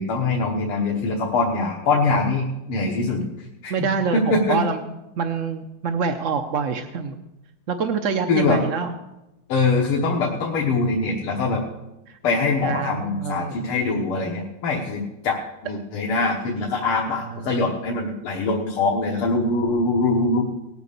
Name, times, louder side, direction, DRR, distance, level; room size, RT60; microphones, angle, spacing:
voice 1, 0.0-3.3 3.6-4.6 8.3-8.6 9.5-11.7 12.2-20.4, left 3 dB, 85° left, 0 dB, 2.3 m, -23 dB
voice 2, 3.7-4.8 5.2-7.2 7.7-8.9 12.1-12.2 12.6-13.7 17.3-17.6, right 5 dB, 70° right, 7 dB, 0.7 m, -26 dB
18.5 x 8.0 x 6.8 m, 0.97 s
omnidirectional pair, 2.3 m